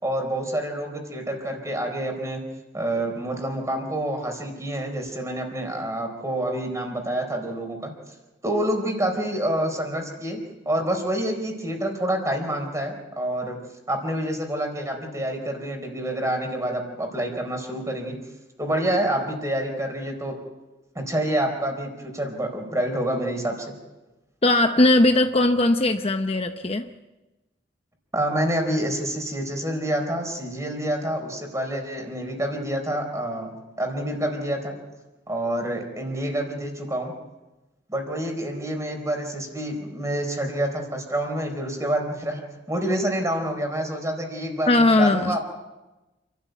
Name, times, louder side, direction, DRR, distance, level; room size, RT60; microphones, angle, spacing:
voice 1, 0.0-2.4 2.7-7.9 8.4-13.6 13.9-18.2 18.6-20.3 20.9-23.7 28.1-34.8 35.3-37.1 37.9-45.4, right 1 dB, 15° right, 4 dB, 4.3 m, -27 dB
voice 2, 24.4-26.9 44.7-45.4, left 2 dB, 35° left, 7 dB, 0.8 m, -19 dB
28.0 x 13.0 x 9.3 m, 1.1 s
head